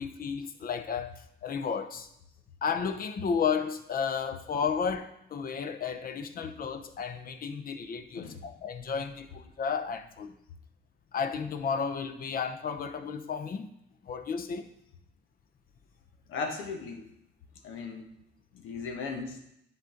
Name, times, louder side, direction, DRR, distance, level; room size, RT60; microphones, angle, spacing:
voice 1, 0.0-2.1 2.6-10.4 11.1-13.7 14.0-14.7, left 6 dB, 45° left, 0.7 m, -33 dB
voice 2, 8.1-8.5 16.3-17.0 17.6-18.1 18.5-19.4, left 4 dB, 90° left, 1.2 m, -37 dB
10.5 x 3.9 x 3.8 m
cardioid pair, 90°, 20 cm